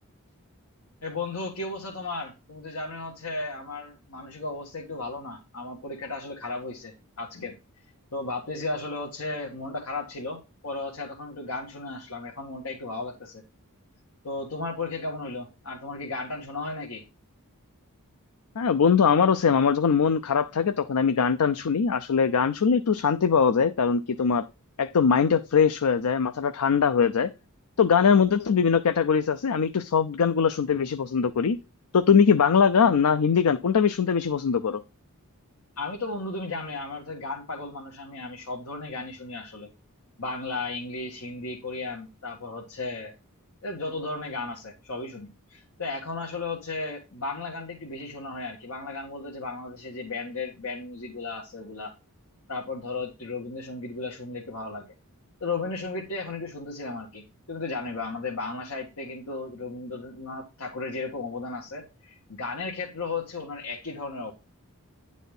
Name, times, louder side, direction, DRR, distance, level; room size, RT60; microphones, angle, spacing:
voice 1, 1.0-7.6 8.1-13.4 14.2-17.0 35.8-39.7 40.2-43.1 43.6-51.9 52.5-54.9 55.4-64.3, left 3 dB, 70° left, 1.7 m, -35 dB
voice 2, 18.6-24.5 24.8-27.3 27.8-31.6 31.9-34.8, left 6 dB, 90° left, 0.5 m, -21 dB
10.5 x 4.1 x 5.3 m
head